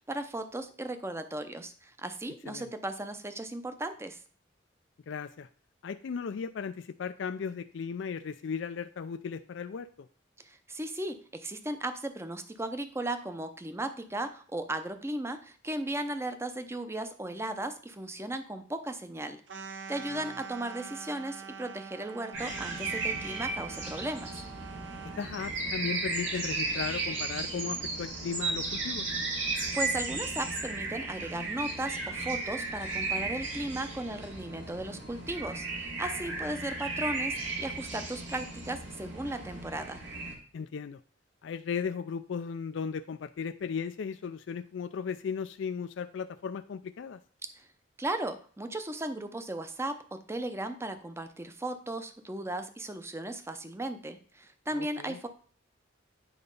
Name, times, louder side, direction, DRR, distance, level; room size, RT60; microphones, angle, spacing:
voice 1, 0.1-4.2 10.4-24.3 29.7-40.0 47.6-47.7 48.0-55.3, right 1 dB, 15° right, 9 dB, 0.6 m, -36 dB
voice 2, 5.1-5.5 5.8-10.1 20.1-20.3 25.2-29.1 40.5-41.0 41.4-47.2 54.7-55.2, left 6 dB, 75° left, 10 dB, 0.4 m, -36 dB
sound 1, 19.5-25.3, right 6 dB, 65° right, 0.7 m, -45 dB
sound 2, 22.3-40.3, right 3 dB, 80° right, 2.2 m, -35 dB
8.6 x 4.0 x 5.3 m, 0.43 s
head